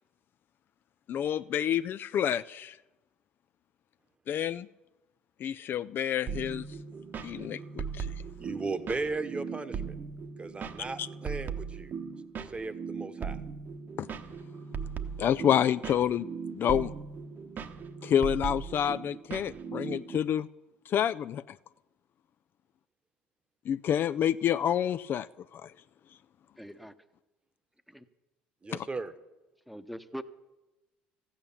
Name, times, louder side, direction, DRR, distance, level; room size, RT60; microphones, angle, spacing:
voice 1, 1.1-2.8 4.3-4.7 5.4-6.6 7.2-8.1 11.0-11.1 14.0-14.1 15.2-16.3 16.5-16.9 18.0-20.5 20.9-21.4 23.7-25.3 25.5-25.7 28.7-28.9, left 9 dB, 45° left, 13 dB, 0.3 m, -28 dB
sound 1, 6.3-20.2, right 6 dB, 45° right, 1.0 m, -38 dB
voice 2, 8.4-10.0 10.4-11.9 12.4-13.4 28.6-29.1, right 3 dB, 20° right, 12 dB, 1.1 m, -36 dB
voice 3, 26.6-26.9 27.9-28.0 29.7-30.2, equal, ahead, 12 dB, 0.9 m, -42 dB
14.0 x 8.7 x 7.1 m, 1.0 s
hypercardioid pair, 70°, 5 cm